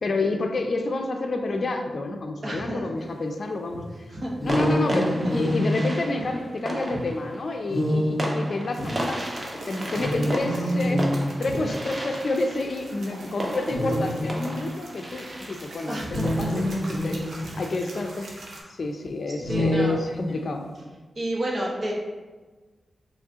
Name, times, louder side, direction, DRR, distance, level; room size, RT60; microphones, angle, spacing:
voice 1, 0.0-3.8 4.4-16.6 16.9-18.3 18.7-20.7, left 2 dB, 55° left, 4 dB, 0.4 m, -29 dB
voice 2, 2.4-2.8 3.7-3.8 4.1-4.3 5.2-5.3 6.2-6.3 8.8-8.9 11.6-11.7 15.9-16.5 19.5-20.0 21.2-21.9, right 1 dB, 50° right, -3 dB, 0.9 m, -30 dB
sound 1, 3.2-3.6 4.5-17.9, right 1 dB, 30° right, 0.6 m, -35 dB
sound 2, 4.3-6.8 7.7-8.9 9.9-11.7 12.6-12.7 13.6-14.7 16.0-17.8 19.3-20.6, equal, 5° right, 1.4 m, -27 dB
sound 3, 8.7-18.6, right 2 dB, 85° right, 0.7 m, -44 dB
4.7 x 3.1 x 2.8 m, 1.3 s
wide cardioid pair, 90°, 0 cm